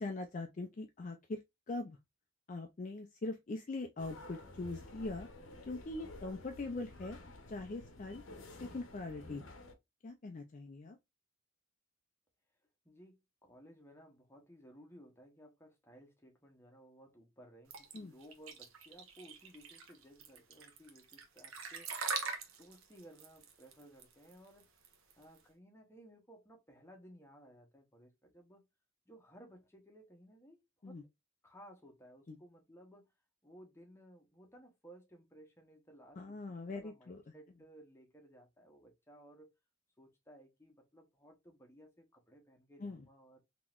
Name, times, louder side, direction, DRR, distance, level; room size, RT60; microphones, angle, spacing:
voice 1, 0.0-1.4 1.7-2.0 2.5-5.3 5.7-7.2 7.5-8.2 8.6-9.4 10.0-11.0 17.9-18.1 30.8-31.0 32.3-32.4 36.2-37.2 42.8-43.1, left 2 dB, 35° left, 0.4 m, -42 dB
sound 1, 4.0-9.7, left 2 dB, 70° left, 0.8 m, -52 dB
voice 2, 12.8-21.9 22.6-24.7 25.1-28.7 29.1-31.0 31.4-33.1 33.4-39.5 40.0-43.4, equal, 10° left, 0.9 m, -58 dB
sound 2, 17.7-25.4, right 5 dB, 80° right, 0.9 m, -42 dB
3.7 x 2.9 x 2.4 m
head